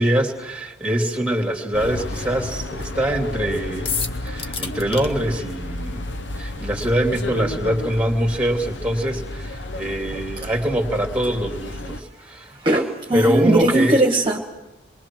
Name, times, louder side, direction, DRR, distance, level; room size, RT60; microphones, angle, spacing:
voice 1, 0.0-3.9 4.2-6.0 6.4-12.5 13.1-14.0, right 1 dB, 5° right, 2 dB, 2.9 m, -23 dB
sound 1, 1.7-12.0, left 1 dB, 70° left, 0.9 m, -32 dB
sound 2, 3.8-5.1, left 5 dB, 30° left, 1.5 m, -27 dB
voice 2, 12.6-14.4, right 1 dB, 25° right, 1 dB, 1.7 m, -19 dB
28.5 x 23.0 x 6.2 m, 1.0 s
head